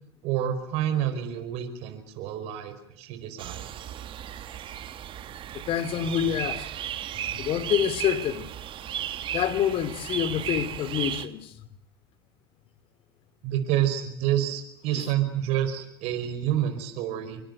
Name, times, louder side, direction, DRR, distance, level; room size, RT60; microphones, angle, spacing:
voice 1, 0.2-3.7 13.4-17.4, right 11 dB, 60° right, 4.9 m, -28 dB
sound 1, 3.4-11.3, right 10 dB, 45° right, 2.0 m, -35 dB
voice 2, 5.7-6.7 7.3-8.5 9.3-11.5 14.9-15.1, left 10 dB, 50° left, 3.3 m, -27 dB
26.5 x 24.0 x 8.1 m
hypercardioid pair, 85°, 12 cm